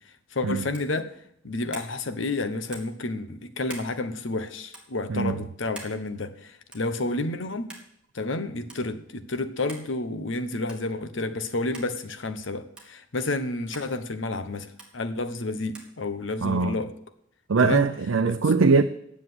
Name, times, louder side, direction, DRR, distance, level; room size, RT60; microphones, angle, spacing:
voice 1, 0.3-1.1 1.4-7.7 8.1-16.9 17.6-17.9 18.3-18.4, left 2 dB, 75° left, 1.0 m, -30 dB
sound 1, 0.7-1.0 1.7-1.9 2.7-3.0 3.7-3.9 4.7-4.9 5.8-6.0 6.7-6.9 7.7-7.9 8.7-8.8 9.7-9.9 10.7-10.9 11.7-11.9 12.8-12.9 13.7-13.9 14.8-14.9 15.7-15.9, right 2 dB, 5° right, 2.0 m, -43 dB
voice 2, 16.4-16.8 17.5-18.8, right 4 dB, 85° right, 0.6 m, -21 dB
9.8 x 7.4 x 7.8 m
head